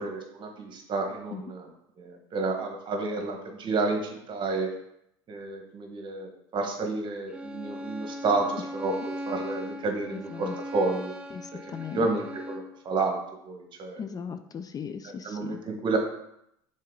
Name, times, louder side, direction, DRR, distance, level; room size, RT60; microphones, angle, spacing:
voice 1, 0.0-1.7 2.0-4.7 5.3-11.1 11.9-13.2 13.4-14.0 15.0-16.0, right 3 dB, 40° right, 3 dB, 1.5 m, -30 dB
Bowed string instrument, 7.3-12.7, equal, 10° right, 1.0 m, -39 dB
voice 2, 10.1-10.6 11.3-12.1 14.0-15.6, left 7 dB, 30° left, 9 dB, 0.4 m, -38 dB
6.4 x 4.0 x 3.8 m, 0.77 s
hypercardioid pair, 80°, 12 cm